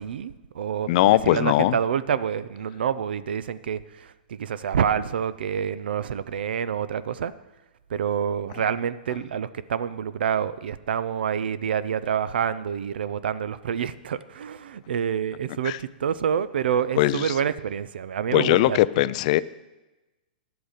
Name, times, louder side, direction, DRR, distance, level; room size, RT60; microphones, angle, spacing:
voice 1, 0.0-7.3 7.9-18.8, right 8 dB, 80° right, 16 dB, 0.5 m, -27 dB
voice 2, 0.9-1.8 15.6-15.8 16.9-17.3 18.3-19.4, left 16 dB, 45° left, 17 dB, 0.3 m, -20 dB
10.5 x 7.9 x 5.0 m, 1.1 s
hypercardioid pair, 150°, 5 cm